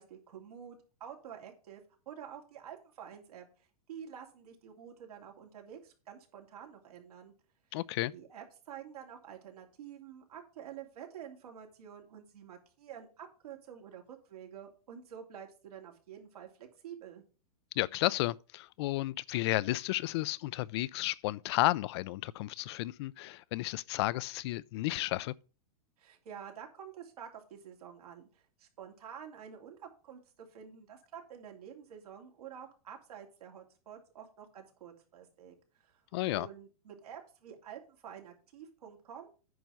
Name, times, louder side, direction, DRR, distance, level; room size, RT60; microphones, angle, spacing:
voice 1, 0.0-7.3 8.1-17.2 26.0-36.0 36.3-39.3, right 8 dB, 80° right, 3.0 m, -49 dB
voice 2, 7.7-8.1 17.8-25.3 36.1-36.5, left 18 dB, 45° left, 0.4 m, -32 dB
9.5 x 5.2 x 5.7 m
hypercardioid pair, 145°, 19 cm